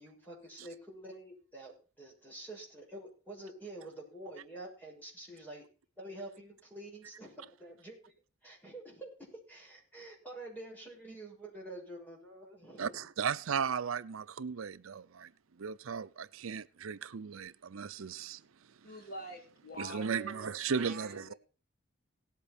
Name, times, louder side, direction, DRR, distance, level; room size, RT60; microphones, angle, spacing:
voice 1, 0.0-5.7 6.0-8.1 8.4-13.0, right 1 dB, 10° left, 6.5 m, -48 dB
voice 2, 12.8-15.3 15.6-18.4 19.8-21.3, right 6 dB, 85° right, 0.6 m, -36 dB
voice 3, 18.8-21.3, equal, 45° left, 2.2 m, -47 dB
18.0 x 8.5 x 4.3 m
head